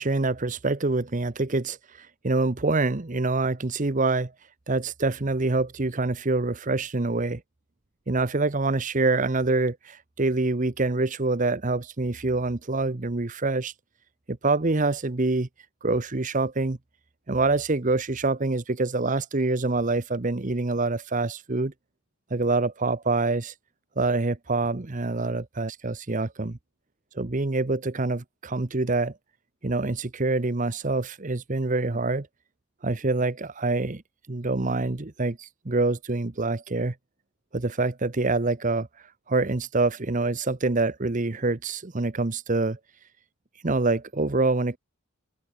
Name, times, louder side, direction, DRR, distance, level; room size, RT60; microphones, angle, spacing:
voice 1, 0.0-4.3 4.7-7.4 8.1-13.7 14.3-15.5 15.8-16.8 17.3-21.7 22.3-23.5 24.0-26.6 27.1-29.1 29.6-32.3 32.8-34.0 34.3-36.9 37.5-38.9 39.3-42.8 43.6-44.8, right 3 dB, 35° right, 0.9 m, -26 dB
open air
head